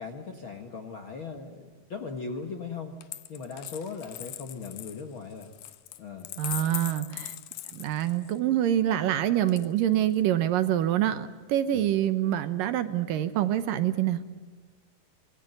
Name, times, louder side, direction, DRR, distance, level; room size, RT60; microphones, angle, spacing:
voice 1, 0.0-3.0 3.3-5.5 6.0-6.3 11.7-11.8, left 5 dB, 55° left, 4 dB, 1.5 m, -38 dB
Coin (dropping), 3.0-8.4 9.5-10.2, left 14 dB, 70° left, 2.1 m, -40 dB
voice 2, 6.4-7.3 7.7-14.2, right 12 dB, 70° right, 11 dB, 2.4 m, -26 dB
25.5 x 21.0 x 9.3 m, 1.4 s
omnidirectional pair, 4.4 m